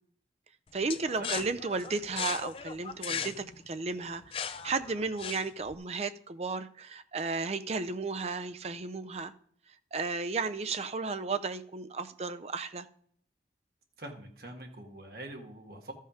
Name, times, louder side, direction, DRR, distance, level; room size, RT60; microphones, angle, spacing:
voice 1, 0.7-9.3 9.9-12.9, right 4 dB, 35° right, 10 dB, 0.5 m, -34 dB
sound 1, 0.9-5.7, left 7 dB, 30° left, 0.4 m, -38 dB
voice 2, 14.0-15.9, right 1 dB, 55° right, 2 dB, 1.6 m, -44 dB
13.5 x 5.6 x 5.0 m, 0.62 s
head